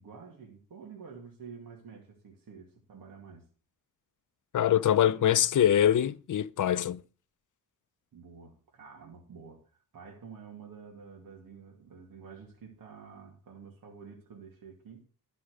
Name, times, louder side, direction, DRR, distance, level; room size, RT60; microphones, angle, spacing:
voice 1, 0.0-3.5 8.1-15.1, right 6 dB, 65° right, 2.5 m, -49 dB
voice 2, 4.5-7.0, left 10 dB, 60° left, 0.6 m, -24 dB
12.0 x 6.1 x 6.4 m
wide cardioid pair, 120°, 36 cm